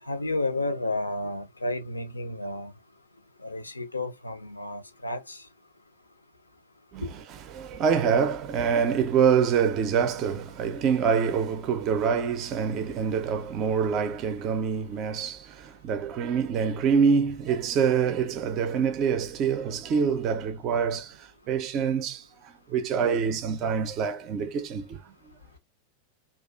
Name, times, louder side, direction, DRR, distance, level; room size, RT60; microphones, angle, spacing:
voice 1, 0.0-2.7 3.4-5.5 7.0-7.1, left 2 dB, 80° left, 0.5 m, -31 dB
voice 2, 7.5-25.0, right 6 dB, 35° right, 0.4 m, -26 dB
2.3 x 2.3 x 2.3 m
figure-of-eight pair, 90°, 0 cm